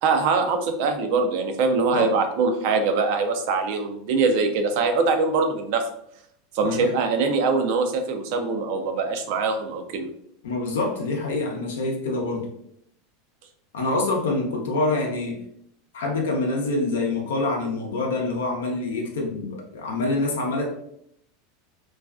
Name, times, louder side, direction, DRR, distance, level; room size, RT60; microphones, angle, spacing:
voice 1, 0.0-5.8 6.5-10.1, right 4 dB, 65° right, 6 dB, 0.4 m, -23 dB
voice 2, 10.4-12.5 13.7-15.4 15.9-20.7, left 2 dB, 85° left, 0 dB, 0.6 m, -26 dB
2.3 x 2.2 x 2.4 m, 0.71 s
hypercardioid pair, 105°, 0 cm